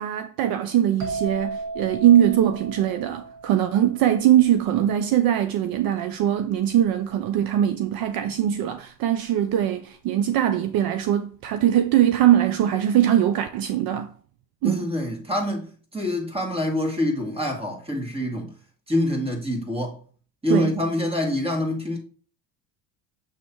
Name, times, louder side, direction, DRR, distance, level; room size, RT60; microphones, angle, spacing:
voice 1, 0.0-14.1 14.6-14.9 20.5-20.8, right 11 dB, 60° right, 0.6 m, -21 dB
sound 1, 1.0-4.6, right 3 dB, 85° right, 2.2 m, -35 dB
voice 2, 14.6-18.5 18.9-20.0 20.4-22.0, left 1 dB, 15° right, 2.0 m, -26 dB
7.6 x 3.1 x 4.5 m
supercardioid pair, 100°, 41 cm